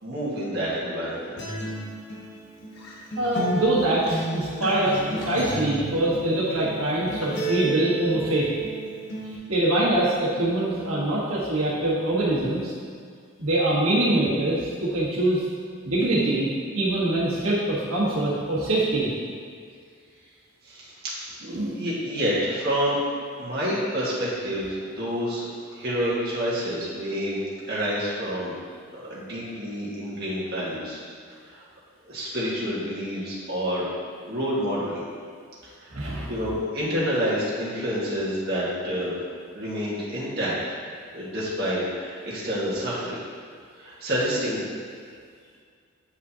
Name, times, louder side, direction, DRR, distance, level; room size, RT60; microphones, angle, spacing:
voice 1, 0.0-1.4 20.6-21.2 21.7-23.0 23.4-25.5 25.7-27.4 27.7-28.6 28.9-31.0 31.5-31.6 32.1-33.9 34.3-35.0 35.6-39.1 39.5-40.5 41.1-43.2 43.7-44.6, equal, 50° right, -8 dB, 1.6 m, -28 dB
Acoustic guitar, 1.4-9.4, right 2 dB, 55° left, 1.1 m, -33 dB
voice 2, 3.2-8.5 9.5-12.7 13.4-15.4 15.8-16.5 16.7-19.1 21.4-21.8 35.9-36.3, right 1 dB, 90° right, -7 dB, 1.4 m, -24 dB
8.5 x 5.1 x 2.8 m, 2.1 s
head